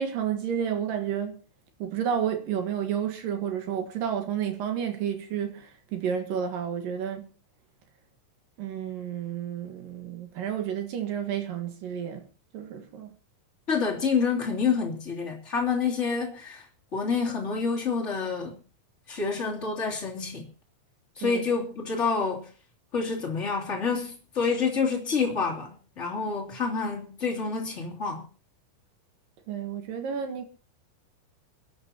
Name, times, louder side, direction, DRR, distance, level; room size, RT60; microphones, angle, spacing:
voice 1, 0.0-1.3 1.8-7.3 8.6-12.3 12.5-13.1 21.2-21.4 29.5-30.5, right 8 dB, 65° right, 2.3 m, -31 dB
voice 2, 13.7-16.7 16.9-18.6 19.1-20.5 21.2-22.5 22.9-28.2, left 5 dB, 20° left, 2.0 m, -28 dB
29.0 x 9.8 x 2.9 m
omnidirectional pair, 5.9 m